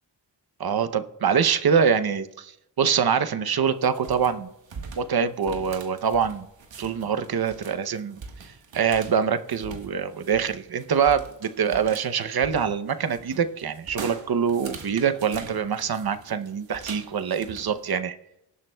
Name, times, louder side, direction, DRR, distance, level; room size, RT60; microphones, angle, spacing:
voice 1, 0.6-2.5 2.8-4.5 5.0-6.5 6.8-8.2 8.7-18.1, right 7 dB, 55° right, 10 dB, 0.7 m, -24 dB
sound 1, 3.6-17.9, right 5 dB, 85° right, 1.4 m, -43 dB
18.5 x 11.0 x 2.2 m, 0.86 s
wide cardioid pair, 125°, 44 cm